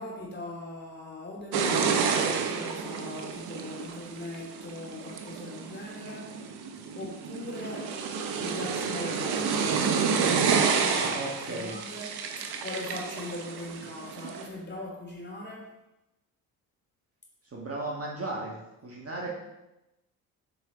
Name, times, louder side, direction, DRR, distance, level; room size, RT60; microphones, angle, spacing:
voice 1, 0.0-6.3 6.7-7.9 8.4-15.6 19.2-19.3, left 1 dB, 20° left, -3 dB, 3.1 m, -40 dB
sound 1, 1.5-14.5, right 6 dB, 55° right, 1.1 m, -30 dB
voice 2, 10.9-11.8 17.5-18.5 18.8-19.3, right 2 dB, 30° right, -3 dB, 1.9 m, -35 dB
9.1 x 4.9 x 4.0 m, 0.95 s
hypercardioid pair, 50°, 46 cm